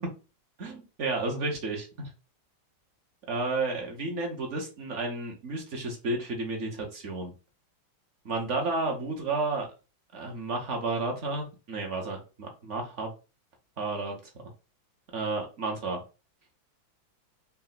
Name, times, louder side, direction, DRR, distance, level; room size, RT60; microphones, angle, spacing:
voice 1, 0.6-2.1 3.3-7.3 8.2-9.7 10.1-13.1 13.8-14.3 15.1-16.0, right 3 dB, 50° right, 1 dB, 0.9 m, -32 dB
4.2 x 2.2 x 3.9 m, 0.32 s
omnidirectional pair, 2.1 m